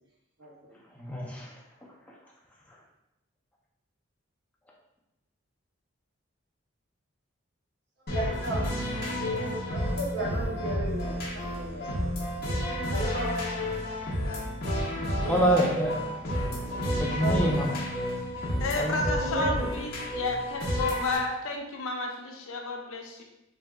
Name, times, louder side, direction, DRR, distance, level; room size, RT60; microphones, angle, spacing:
voice 1, 0.9-2.3 2.7-2.8 15.3-16.1 17.0-17.8 18.8-19.1, equal, 5° left, -3 dB, 0.4 m, -28 dB
sound 1, 8.1-21.2, equal, 45° left, 0.7 m, -31 dB
voice 2, 8.1-8.8 9.2-11.9 12.9-13.3 15.2-15.5 17.2-17.5 19.1-19.7, right 1 dB, 55° right, -4 dB, 0.8 m, -34 dB
voice 3, 18.6-23.2, left 2 dB, 75° left, 2 dB, 0.5 m, -31 dB
3.4 x 2.6 x 2.2 m, 0.90 s
head